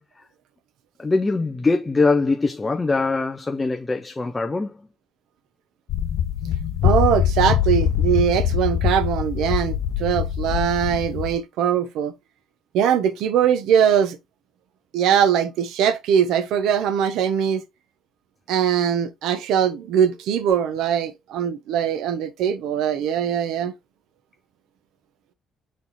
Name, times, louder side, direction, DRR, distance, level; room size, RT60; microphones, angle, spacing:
voice 1, 1.0-4.7, left 3 dB, 15° left, 0.6 m, -22 dB
sound 1, 5.9-11.4, left 10 dB, 60° left, 0.8 m, -23 dB
voice 2, 6.8-12.1 12.7-14.2 14.9-17.6 18.5-23.7, right 9 dB, 80° right, 0.9 m, -21 dB
6.5 x 3.5 x 4.2 m
cardioid pair, 175°, 0 cm